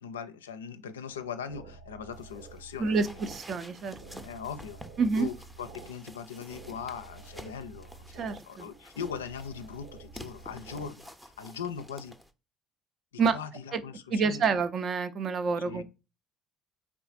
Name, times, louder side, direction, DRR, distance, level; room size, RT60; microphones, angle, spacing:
voice 1, 0.0-3.0 4.2-4.8 5.2-12.1 13.3-14.5 15.6-15.8, left 7 dB, 80° left, 0.4 m, -40 dB
sound 1, 1.1-10.9, right 3 dB, 60° right, 1.0 m, -50 dB
sound 2, 2.1-12.3, equal, 5° right, 0.7 m, -50 dB
voice 2, 2.8-3.9 5.0-5.3 8.2-8.7 13.2-13.4 13.7-13.8 14.1-15.8, right 5 dB, 45° right, 0.6 m, -28 dB
4.8 x 3.5 x 2.4 m
figure-of-eight pair, 55°, 0 cm